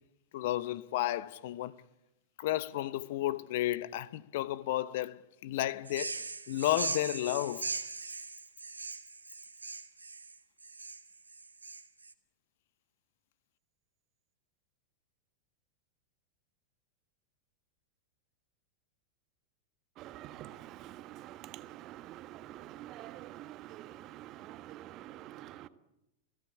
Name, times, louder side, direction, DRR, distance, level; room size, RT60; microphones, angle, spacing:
voice 1, 0.3-1.8 2.4-6.1 6.5-7.7, left 15 dB, 55° left, 0.8 m, -32 dB
sound 1, 5.9-12.1, right 4 dB, 80° right, 1.5 m, -40 dB
voice 2, 20.0-25.7, right 14 dB, 35° right, 1.4 m, -47 dB
28.5 x 16.5 x 8.8 m
figure-of-eight pair, 90°, 0 cm